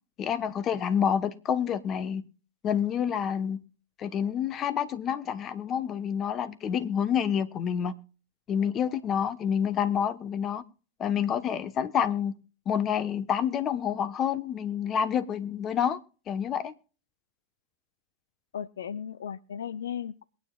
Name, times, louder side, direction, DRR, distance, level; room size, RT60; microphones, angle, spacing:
voice 1, 0.2-2.2 2.6-3.6 4.0-7.9 8.5-10.6 11.0-12.4 12.7-16.0 16.3-16.7, left 8 dB, 30° left, 12 dB, 1.1 m, -28 dB
voice 2, 18.5-20.2, left 8 dB, 80° left, 17 dB, 0.5 m, -36 dB
22.0 x 9.5 x 2.4 m, 0.37 s
hypercardioid pair, 105°, 0 cm